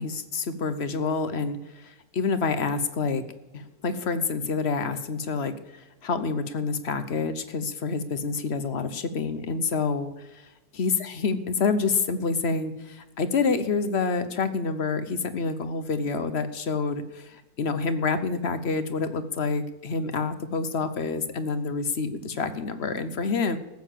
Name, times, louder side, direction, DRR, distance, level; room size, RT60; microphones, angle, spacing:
voice 1, 0.0-3.2 3.5-10.5 10.8-23.6, left 4 dB, 50° left, 12 dB, 0.9 m, -28 dB
15.0 x 6.9 x 7.4 m, 1.0 s
omnidirectional pair, 1.7 m